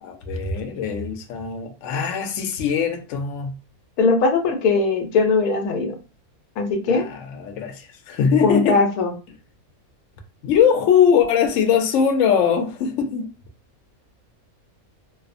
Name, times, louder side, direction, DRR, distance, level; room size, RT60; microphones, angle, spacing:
voice 1, 0.0-3.5 6.9-8.8 10.4-13.3, left 7 dB, 65° left, 0.9 m, -21 dB
voice 2, 4.0-6.0 6.6-7.0 8.4-9.1, left 4 dB, 85° left, 1.1 m, -19 dB
2.7 x 2.0 x 2.4 m
omnidirectional pair, 1.6 m